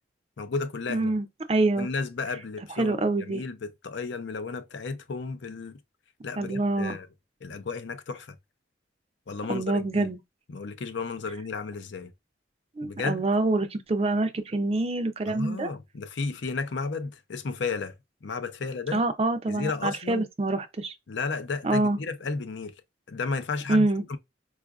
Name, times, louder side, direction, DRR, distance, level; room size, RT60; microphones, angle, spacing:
voice 1, 0.4-1.1 1.8-5.8 6.2-7.1 7.4-8.4 9.3-10.1 10.5-12.1 12.8-13.2 15.3-17.9 18.2-19.0 19.5-20.2 21.1-22.7 23.1-24.2, left 4 dB, 70° left, 0.5 m, -33 dB
voice 2, 0.9-1.9 2.8-3.4 6.4-7.0 9.5-10.2 12.8-15.7 18.9-21.0 21.6-22.0 23.7-24.0, right 2 dB, 30° right, 0.4 m, -26 dB
4.7 x 2.4 x 2.3 m
head